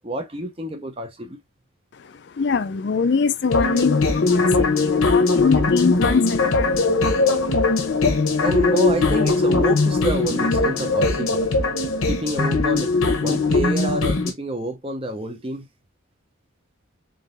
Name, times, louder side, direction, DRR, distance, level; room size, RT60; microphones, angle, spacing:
voice 1, 0.0-1.4 8.4-11.4 12.1-12.9 13.2-15.7, right 1 dB, 25° right, 0.6 m, -28 dB
voice 2, 2.4-4.0 4.3-4.4 4.8-6.7, left 5 dB, 55° left, 0.4 m, -22 dB
sound 1, 3.5-14.3, left 3 dB, 85° left, 1.0 m, -20 dB
3.8 x 3.7 x 2.5 m
head